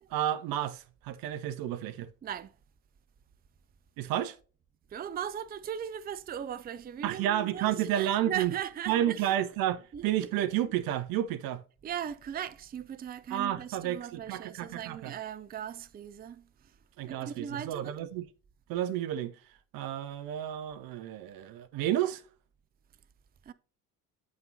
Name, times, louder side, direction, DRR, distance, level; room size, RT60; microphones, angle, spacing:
voice 1, 0.1-2.1 4.0-4.4 7.0-8.5 8.9-11.6 13.3-15.1 17.0-18.3 18.7-19.4 19.7-22.2, right 12 dB, 50° right, 0.8 m, -31 dB
voice 2, 2.2-2.5 4.9-9.3 9.9-10.3 11.8-16.8 17.0-18.0 23.4-23.5, right 9 dB, 20° right, 0.5 m, -38 dB
8.6 x 6.3 x 2.8 m
figure-of-eight pair, 60°, 46 cm